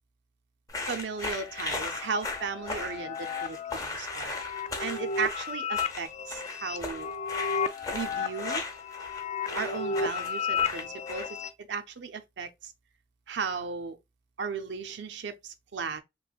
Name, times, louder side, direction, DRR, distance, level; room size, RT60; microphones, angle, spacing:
sound 1, 0.7-11.5, left 3 dB, 20° left, 0.7 m, -37 dB
voice 1, 0.8-4.4 4.8-7.1 7.9-8.6 9.5-11.4 11.7-12.7 13.3-14.0 14.4-16.0, right 5 dB, 75° right, 0.5 m, -35 dB
sound 2, 1.1-11.5, left 5 dB, 40° left, 0.3 m, -34 dB
3.1 x 2.9 x 2.3 m
head